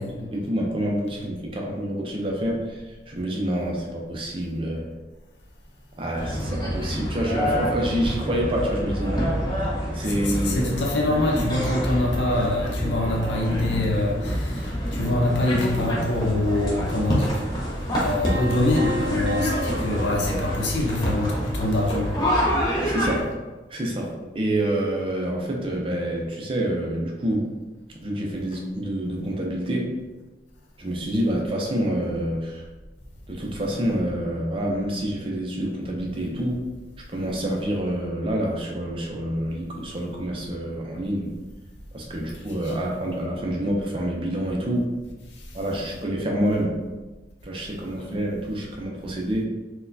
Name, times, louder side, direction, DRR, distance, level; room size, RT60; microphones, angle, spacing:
voice 1, 0.0-2.8 3.1-4.9 6.0-9.4 9.9-10.6 19.7-19.8 22.8-23.3 23.7-27.5 28.0-30.0 30.8-32.6 33.3-36.6 37.1-41.3 41.9-44.9 45.5-46.8 47.4-49.4, right 1 dB, 30° right, -1 dB, 0.5 m, -27 dB
sound 1, 6.1-23.2, equal, 25° left, 0.6 m, -27 dB
voice 2, 10.1-17.5 18.0-22.1 42.6-42.8 45.3-45.4 47.9-48.1, left 1 dB, 85° left, -1 dB, 0.7 m, -25 dB
sound 2, 18.3-21.2, equal, 75° right, 0.6 m, -33 dB
4.1 x 2.2 x 2.6 m, 1.2 s
head